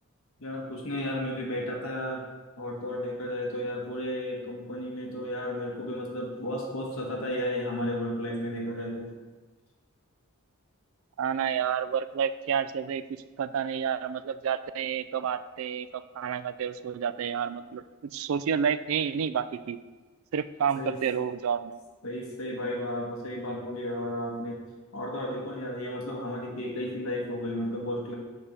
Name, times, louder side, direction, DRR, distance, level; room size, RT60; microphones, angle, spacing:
voice 1, 0.4-2.2 2.6-9.1 20.8-21.0 22.0-24.6 24.9-28.1, left 1 dB, 70° left, -1 dB, 1.3 m, -33 dB
voice 2, 11.2-19.8 20.3-21.8, right 7 dB, 65° right, 14 dB, 0.3 m, -30 dB
6.7 x 4.2 x 5.1 m, 1.3 s
head